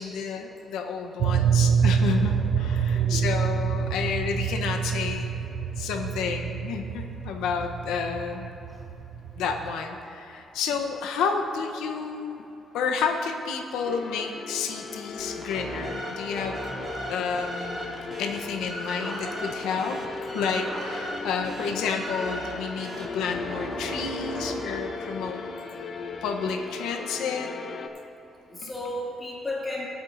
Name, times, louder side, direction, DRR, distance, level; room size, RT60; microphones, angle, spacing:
voice 1, 0.0-5.3 5.8-8.5 9.4-12.4 12.7-16.6 17.1-20.0 20.3-25.4 26.2-27.5, left 6 dB, 90° left, 2 dB, 0.8 m, -30 dB
sound 1, 1.2-9.7, right 7 dB, 70° right, 0.6 m, -26 dB
voice 2, 2.9-3.3 28.5-29.8, left 1 dB, 20° left, -4 dB, 2.0 m, -33 dB
sound 2, 13.8-27.9, left 4 dB, 50° left, 0.7 m, -37 dB
sound 3, 15.2-25.7, right 1 dB, 35° right, 2.6 m, -37 dB
18.5 x 8.1 x 2.6 m, 2.9 s
cardioid pair, 90°, 0 cm